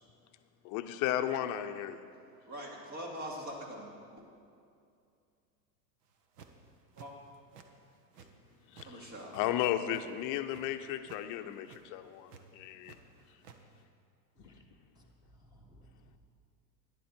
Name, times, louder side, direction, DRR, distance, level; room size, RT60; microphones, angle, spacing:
voice 1, 0.6-2.0 8.7-13.0, left 11 dB, 40° left, 9 dB, 0.8 m, -34 dB
voice 2, 2.5-4.2 7.0-7.1 8.8-9.3, equal, 35° right, -1 dB, 3.0 m, -43 dB
sound 1, 6.1-6.6 6.9-7.7 7.9-8.9 9.2-10.6 11.0-11.2 11.5-11.8 12.3-13.0 13.2-13.6, right 7 dB, 65° right, 1.4 m, -54 dB
voice 3, 14.9-16.2, right 1 dB, 10° right, 0 dB, 1.5 m, -60 dB
14.5 x 10.5 x 4.5 m, 2.4 s
hypercardioid pair, 115°, 50 cm